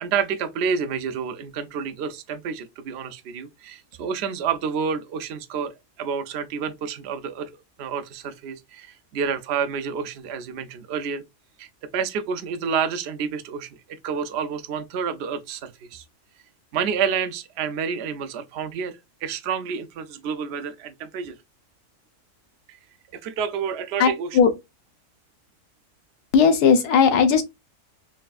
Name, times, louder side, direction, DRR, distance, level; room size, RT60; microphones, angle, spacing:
voice 1, 0.0-11.2 11.6-13.7 14.0-16.0 16.7-21.3 22.7-22.8 23.1-24.3, right 6 dB, 60° right, 0.7 m, -29 dB
voice 2, 24.0-24.5 26.3-27.4, left 6 dB, 85° left, 1.3 m, -17 dB
4.3 x 3.3 x 2.3 m
omnidirectional pair, 1.6 m